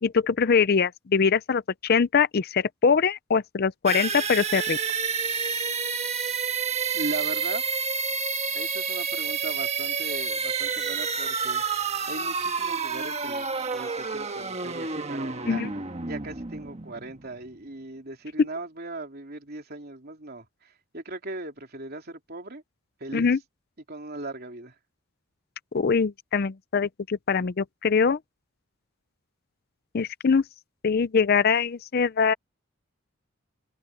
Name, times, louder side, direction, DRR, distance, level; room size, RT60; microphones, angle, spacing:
voice 1, 0.0-4.8 15.5-15.7 23.1-23.4 25.7-28.2 29.9-30.4 30.8-32.3, left 5 dB, 50° left, 0.5 m, -23 dB
sound 1, 3.9-17.6, right 5 dB, 30° right, 1.4 m, -29 dB
voice 2, 6.9-7.6 8.5-15.6 16.0-22.6 23.0-23.3 23.9-24.7, right 2 dB, 50° right, 3.3 m, -38 dB
head